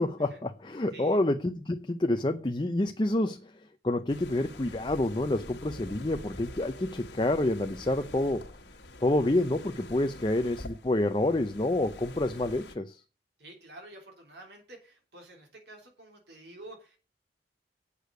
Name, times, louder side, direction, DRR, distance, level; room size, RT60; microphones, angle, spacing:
voice 1, 0.0-3.5 3.8-8.5 9.0-13.0, left 1 dB, 25° left, 0.6 m, -28 dB
sound 1, 4.1-12.7, left 2 dB, 85° left, 1.6 m, -46 dB
voice 2, 13.4-17.0, right 1 dB, 75° right, 3.4 m, -49 dB
8.4 x 6.6 x 8.0 m
head